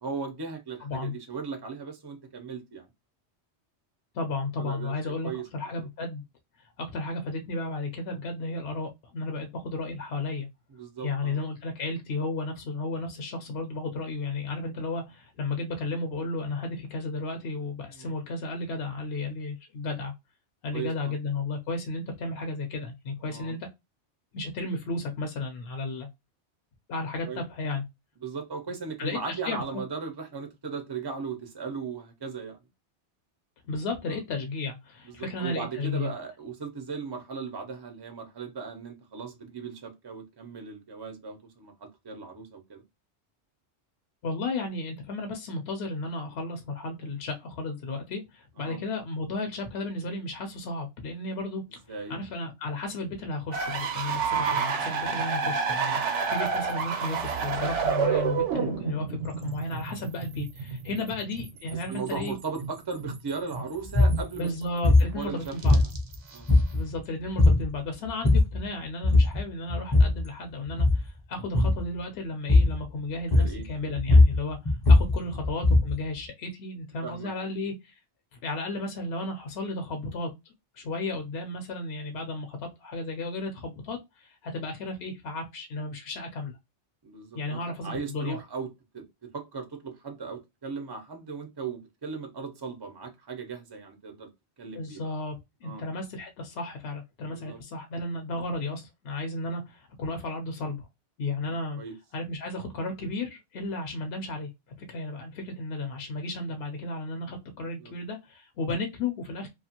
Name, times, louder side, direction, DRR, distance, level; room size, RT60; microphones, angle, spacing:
voice 1, 0.0-2.9 4.6-5.5 10.7-11.4 18.0-18.1 20.7-21.1 23.2-23.5 27.2-27.4 28.2-32.6 34.1-34.2 35.0-42.8 48.6-48.8 51.9-52.2 54.7-55.0 60.9-61.1 61.9-64.5 64.8-65.8 66.3-66.5 73.3-73.7 75.3-75.4 77.0-77.3 87.0-89.0 89.3-94.3 94.6-95.0 95.6-95.9 97.3-97.6 101.4-101.9 107.8-107.9, right 5 dB, 40° right, 0.3 m, -37 dB
voice 2, 0.8-1.1 4.1-6.2 6.6-10.5 11.0-20.1 20.6-23.6 24.3-26.1 26.9-27.8 29.0-29.8 33.7-36.1 44.2-62.4 64.4-65.8 66.7-74.6 74.9-78.0 78.3-80.3 80.8-86.5 87.3-88.4 94.7-100.9 101.2-101.8 102.1-104.5 104.9-109.5, left 2 dB, 65° left, 0.8 m, -34 dB
sound 1, 53.5-64.6 65.0-66.4, right 6 dB, 85° right, 1.0 m, -29 dB
sound 2, 63.9-64.2 64.8-65.1 65.6-66.2 66.5-67.0 67.4-67.7 68.1-68.6 69.0-69.4 69.7-70.2 70.7-71.1 71.5-71.8 72.5-72.8 73.3-73.7 74.0-76.0, left 2 dB, 25° left, 0.6 m, -19 dB
2.5 x 2.4 x 2.7 m
omnidirectional pair, 1.2 m